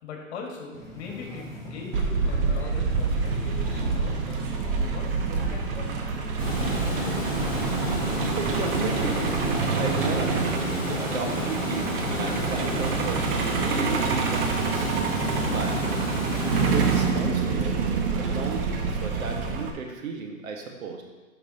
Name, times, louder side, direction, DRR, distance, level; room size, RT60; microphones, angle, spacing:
voice 1, 0.0-4.2 4.6-5.9, left 4 dB, 55° left, 0 dB, 2.0 m, -40 dB
sound 1, 0.7-19.5, left 1 dB, 5° left, 1.7 m, -44 dB
Truck, 1.9-19.7, right 5 dB, 40° right, 1.0 m, -27 dB
Water, 6.4-17.0, equal, 10° right, 1.9 m, -30 dB
voice 2, 8.4-9.4 9.8-10.6 10.9-11.9 12.2-13.2 13.7-14.9 15.4-15.9 16.6-17.8 18.2-21.0, right 4 dB, 75° right, 2 dB, 1.6 m, -34 dB
10.0 x 5.9 x 2.9 m, 1.2 s
hypercardioid pair, 145°, 41 cm